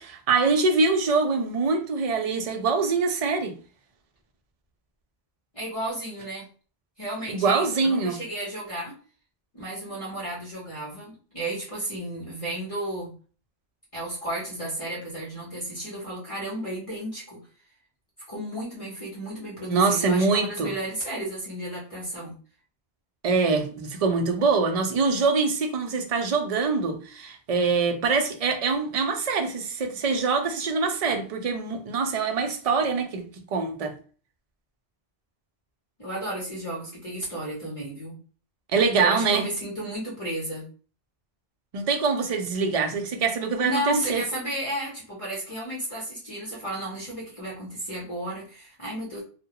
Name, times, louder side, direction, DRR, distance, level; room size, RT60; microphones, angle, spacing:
voice 1, 0.0-3.5 7.3-8.2 19.7-20.7 23.2-33.3 33.5-33.9 38.7-39.5 41.7-44.2, right 4 dB, 55° right, 0.4 m, -24 dB
voice 2, 5.5-6.5 7.0-8.9 9.5-13.1 13.9-17.4 18.3-22.3 36.0-38.2 39.0-40.7 43.6-49.2, right 1 dB, 35° left, 0.9 m, -33 dB
2.3 x 2.1 x 2.8 m
omnidirectional pair, 1.1 m